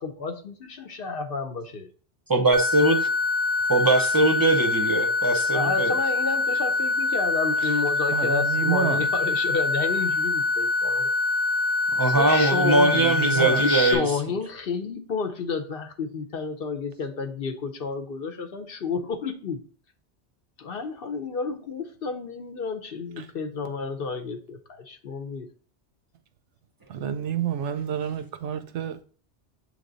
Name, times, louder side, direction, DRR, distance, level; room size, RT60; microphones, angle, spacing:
voice 1, 0.0-1.9 5.5-11.1 12.0-12.9 13.3-19.6 20.6-25.5, left 4 dB, 60° left, 0.8 m, -30 dB
voice 2, 2.3-3.1 3.7-5.9 11.9-14.2, right 2 dB, 25° right, 0.5 m, -21 dB
sound 1, 2.5-13.9, left 3 dB, 25° left, 0.6 m, -25 dB
voice 3, 8.1-9.0 12.9-13.6 23.2-23.3 26.9-29.0, right 9 dB, 80° right, 0.9 m, -29 dB
7.2 x 3.4 x 3.9 m
omnidirectional pair, 1.2 m